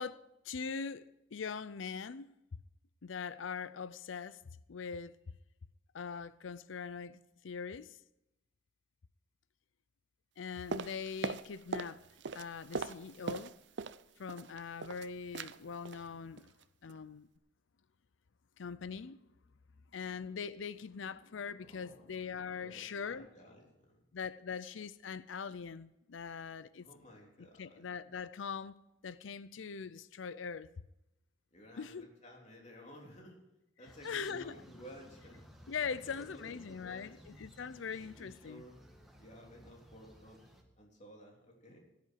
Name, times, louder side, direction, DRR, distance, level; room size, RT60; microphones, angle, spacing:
voice 1, 0.0-2.3 3.0-4.4 4.7-5.2 5.9-8.0 10.4-12.0 12.3-13.5 14.2-16.5 16.8-17.3 18.6-19.2 19.9-23.3 24.1-26.9 27.6-28.7 29.0-30.7 31.8-32.1 34.0-34.5 35.7-38.6, left 6 dB, 85° left, 0.5 m, -42 dB
sound 1, 10.7-12.0 12.2-14.0 14.3-15.1 15.3-15.6 15.9-16.1 16.4-16.6 16.9-17.0, right 4 dB, 65° right, 0.5 m, -40 dB
voice 2, 21.6-22.0 22.6-24.0 26.8-27.9 31.5-33.4 33.8-35.4 36.1-37.2 37.9-38.8 39.1-41.8, equal, 40° left, 3.5 m, -55 dB
sound 2, 33.8-40.6, equal, ahead, 1.8 m, -58 dB
16.5 x 10.5 x 4.7 m
head